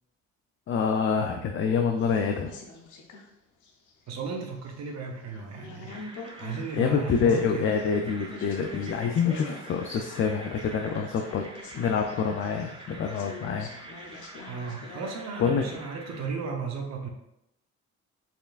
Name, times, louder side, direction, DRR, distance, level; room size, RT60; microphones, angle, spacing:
voice 1, 0.7-2.5 6.7-11.4 11.8-13.7 15.4-15.6, left 6 dB, 45° left, 3 dB, 0.4 m, -26 dB
sound 1, 2.0-3.3 3.6-4.7 5.2-15.1, left 3 dB, 80° left, 0.7 m, -45 dB
voice 2, 4.1-6.1 6.4-7.7 14.5-17.1, right 5 dB, 60° right, 1 dB, 0.8 m, -35 dB
sound 2, 5.9-16.3, right 1 dB, 15° right, 0.7 m, -46 dB
4.3 x 3.3 x 2.4 m, 0.84 s
cardioid pair, 90°, 30 cm